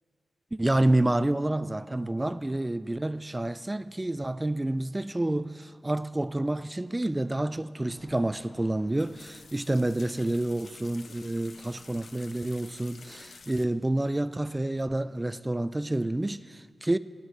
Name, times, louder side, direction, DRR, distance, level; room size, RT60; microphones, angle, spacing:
voice 1, 0.5-17.0, right 1 dB, 15° right, 0.3 m, -28 dB
sound 1, 7.9-13.7, left 4 dB, 65° left, 0.6 m, -51 dB
26.5 x 10.0 x 3.2 m
wide cardioid pair, 110°, 0 cm